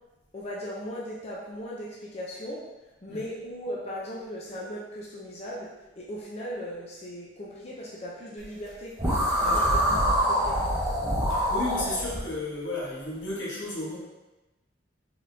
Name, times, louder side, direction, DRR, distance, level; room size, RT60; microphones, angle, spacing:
voice 1, 0.3-2.6 3.0-10.0 10.3-10.6, equal, 35° left, -5 dB, 0.6 m, -38 dB
sound 1, 9.0-12.2, equal, 15° right, 0.9 m, -25 dB
voice 2, 9.4-9.7 11.3-14.0, left 2 dB, 85° left, -6 dB, 1.3 m, -33 dB
4.0 x 3.8 x 2.7 m, 1.1 s
head